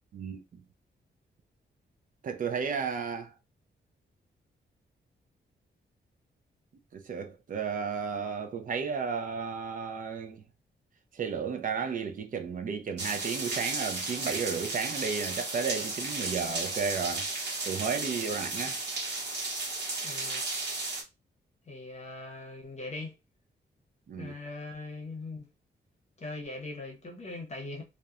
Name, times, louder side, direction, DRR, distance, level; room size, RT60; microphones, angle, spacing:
voice 1, 0.1-0.6 2.2-3.3 6.9-10.4 11.1-17.3 17.6-18.8 24.1-24.3, right 6 dB, 45° right, 0.4 m, -33 dB
sound 1, 13.0-21.0, right 2 dB, 65° right, 0.8 m, -34 dB
voice 2, 20.0-20.4 21.6-23.1 24.2-25.5 26.2-27.8, left 2 dB, 35° left, 0.7 m, -40 dB
2.8 x 2.1 x 2.4 m
wide cardioid pair, 175°, 19 cm